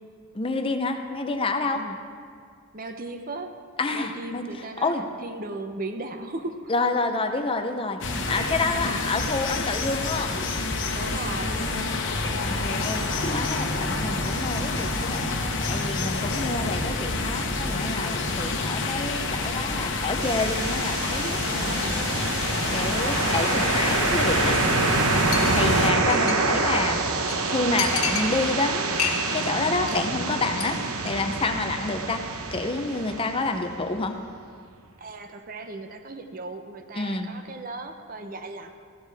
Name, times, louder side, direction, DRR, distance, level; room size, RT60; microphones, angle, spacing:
voice 1, 0.3-1.9 3.8-4.5 4.8-5.0 6.7-8.0 8.3-10.3 12.3-22.2 22.7-24.6 25.5-27.0 27.5-32.2 32.5-34.2 37.0-37.3, left 3 dB, 25° left, 6 dB, 0.6 m, -28 dB
voice 2, 2.7-3.6 3.9-6.7 8.7-9.1 10.9-12.0 21.4-22.1 25.6-26.4 35.0-38.7, right 2 dB, 40° right, 6 dB, 0.7 m, -37 dB
sound 1, 8.0-25.9, left 3 dB, 60° left, 1.1 m, -28 dB
sound 2, 20.2-34.1, right 3 dB, 85° right, 1.0 m, -27 dB
Chink clink, 24.5-24.7 25.0-25.1 25.3-26.7 27.0-27.1 27.3-27.4 27.8-28.7 29.0-29.5 29.7-30.0 30.3-30.6 31.0-31.1, left 7 dB, 90° left, 1.5 m, -30 dB
15.0 x 13.0 x 3.4 m, 2.1 s
head